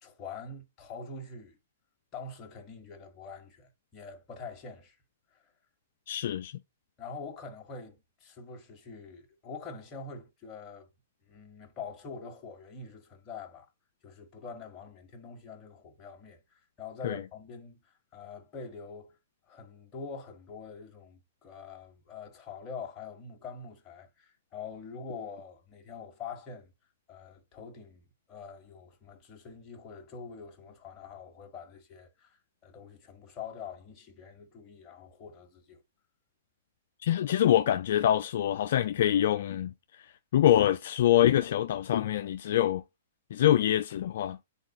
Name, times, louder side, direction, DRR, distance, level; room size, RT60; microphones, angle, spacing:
voice 1, 0.0-1.6 2.1-5.0 7.0-10.9 11.3-13.7 14.0-19.2 19.5-26.7 27.1-35.8, left 5 dB, 25° left, 1.7 m, -45 dB
voice 2, 6.1-6.5 17.0-17.2 37.0-39.7 40.3-42.8 43.3-44.4, left 11 dB, 65° left, 0.4 m, -25 dB
9.9 x 4.1 x 2.4 m
hypercardioid pair, 130°, 0 cm